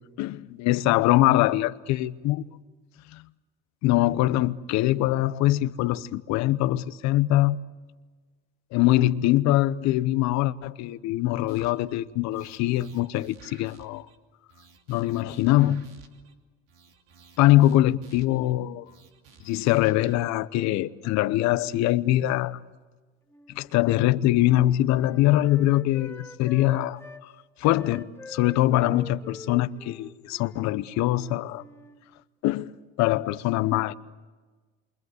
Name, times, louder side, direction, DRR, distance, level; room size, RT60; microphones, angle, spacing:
voice 1, 0.2-2.5 3.1-3.2 3.8-7.6 8.7-14.1 14.9-15.9 17.4-18.9 19.4-22.6 23.5-27.3 27.6-31.6 32.4-32.7 33.0-33.9, left 15 dB, 65° left, 1.0 m, -23 dB
sound 1, 11.5-12.0 12.3-14.2 14.5-16.3 16.7-18.5 18.9-20.2, right 7 dB, 90° right, 2.9 m, -53 dB
Wind instrument woodwind instrument, 23.3-27.3 27.6-32.1, left 3 dB, 10° left, 1.4 m, -45 dB
28.5 x 24.5 x 8.1 m
supercardioid pair, 100°, 29 cm